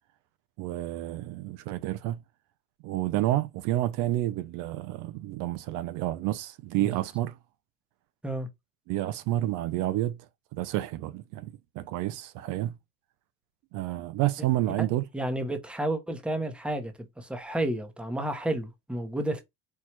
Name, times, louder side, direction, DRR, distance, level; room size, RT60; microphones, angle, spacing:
voice 1, 0.6-2.2 2.8-7.4 8.9-10.2 10.5-12.7 13.7-15.1, right 15 dB, 60° right, 0.5 m, -29 dB
voice 2, 15.1-19.4, right 1 dB, 5° right, 0.8 m, -31 dB
4.6 x 2.3 x 4.4 m
cardioid pair, 125°, 34 cm